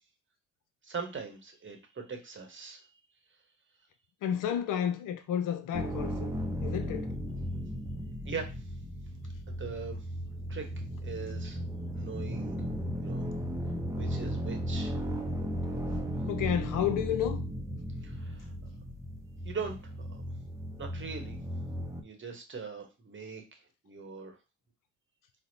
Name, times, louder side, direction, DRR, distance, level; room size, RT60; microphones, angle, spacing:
voice 1, 0.8-2.8 8.2-8.5 9.5-10.0 10.5-10.7 11.0-11.6 11.9-12.5 13.0-13.2 14.0-14.9 18.0-18.5 19.4-20.2 20.8-21.4 22.0-23.4 23.8-24.4, right 5 dB, 30° right, 1.0 m, -40 dB
voice 2, 4.2-6.3 6.6-7.1 16.3-17.4, left 9 dB, 55° left, 0.5 m, -31 dB
sound 1, 5.7-22.0, equal, 10° right, 0.6 m, -35 dB
4.2 x 2.0 x 2.6 m
hypercardioid pair, 50°, 39 cm